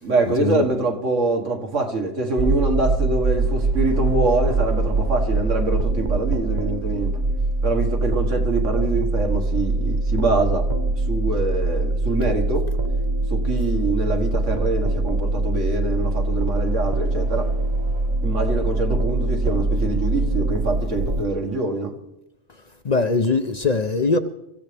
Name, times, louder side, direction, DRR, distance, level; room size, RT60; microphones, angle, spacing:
voice 1, 0.0-7.2 7.6-10.6 11.1-12.7 13.3-17.5 18.2-22.0, right 3 dB, 80° right, 2.1 m, -24 dB
sound 1, 2.4-21.2, right 2 dB, 40° right, 1.0 m, -23 dB
voice 2, 22.8-24.2, left 4 dB, 45° left, 0.6 m, -21 dB
23.5 x 15.0 x 3.4 m
omnidirectional pair, 1.2 m